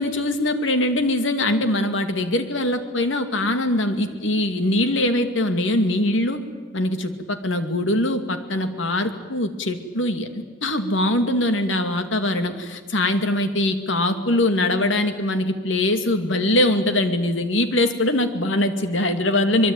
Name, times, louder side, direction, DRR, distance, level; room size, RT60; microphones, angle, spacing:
voice 1, 0.0-6.4 6.7-19.7, left 1 dB, 85° left, 8 dB, 2.5 m, -22 dB
24.5 x 22.5 x 9.2 m, 1.5 s
head